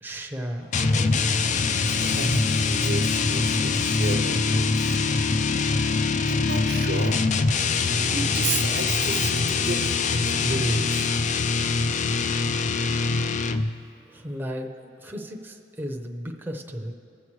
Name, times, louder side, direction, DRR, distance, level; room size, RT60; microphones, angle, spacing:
voice 1, 0.0-1.3 14.1-16.9, equal, 10° right, 1 dB, 0.7 m, -35 dB
sound 1, 0.7-13.8, left 4 dB, 40° left, 0.4 m, -23 dB
voice 2, 1.9-5.0 6.2-7.2 8.0-11.1, right 3 dB, 65° right, 4 dB, 0.8 m, -32 dB
21.0 x 7.2 x 3.2 m, 2.8 s
head